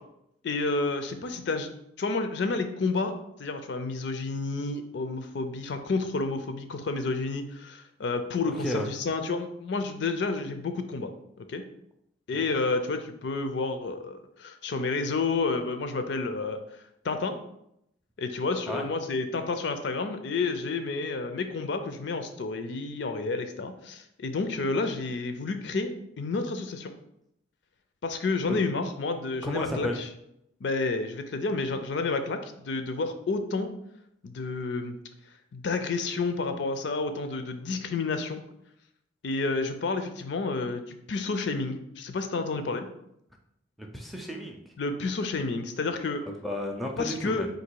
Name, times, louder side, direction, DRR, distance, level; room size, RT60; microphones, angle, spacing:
voice 1, 0.4-1.7 2.0-3.1 3.4-11.1 11.4-11.6 12.3-16.6 17.0-17.4 18.2-26.9 28.0-30.1 30.6-33.7 34.2-35.0 35.5-38.4 39.2-42.9 44.8-46.2 47.0-47.5, left 3 dB, 60° left, 8 dB, 0.4 m, -30 dB
voice 2, 8.5-8.9 12.3-12.5 18.7-18.9 28.5-28.6 29.4-30.0 43.8-44.6 46.3-47.5, equal, ahead, 2 dB, 0.4 m, -33 dB
3.9 x 2.6 x 4.5 m, 0.78 s
head